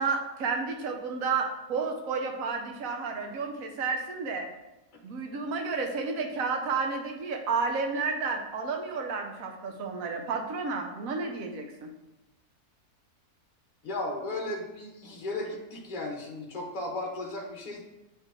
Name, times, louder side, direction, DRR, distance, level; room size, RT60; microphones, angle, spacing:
voice 1, 0.0-4.5 5.0-11.9, right 4 dB, 65° right, 3 dB, 1.2 m, -31 dB
voice 2, 13.8-17.8, left 2 dB, 35° left, 0 dB, 1.2 m, -35 dB
8.8 x 3.2 x 3.7 m, 0.99 s
omnidirectional pair, 1.6 m